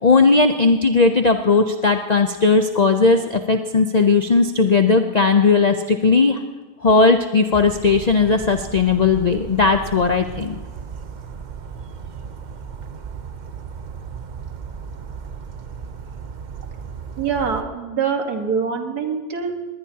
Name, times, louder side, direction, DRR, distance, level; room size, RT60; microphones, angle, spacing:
voice 1, 0.0-6.4 6.8-10.5, left 4 dB, 65° left, 7 dB, 0.4 m, -17 dB
Bird vocalization bird call bird song, 7.5-17.6, right 6 dB, 45° right, 0.6 m, -35 dB
voice 2, 17.2-19.5, right 6 dB, 85° right, 4 dB, 2.0 m, -24 dB
20.0 x 19.5 x 2.8 m, 1.3 s
omnidirectional pair, 1.6 m